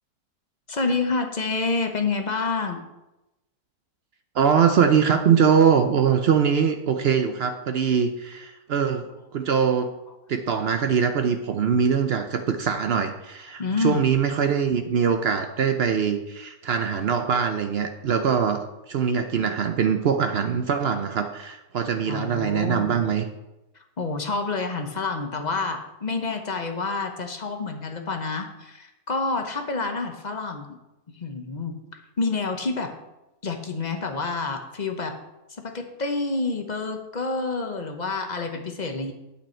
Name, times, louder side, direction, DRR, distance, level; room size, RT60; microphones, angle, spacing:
voice 1, 0.7-2.8 13.6-14.0 22.1-23.0 24.0-30.8 31.2-31.8 32.2-32.9 33.4-35.1 35.6-39.1, left 3 dB, 40° left, 5 dB, 0.7 m, -28 dB
voice 2, 4.3-9.9 10.3-23.2, right 7 dB, 85° right, 6 dB, 0.5 m, -22 dB
8.9 x 8.5 x 4.4 m, 0.97 s
omnidirectional pair, 1.9 m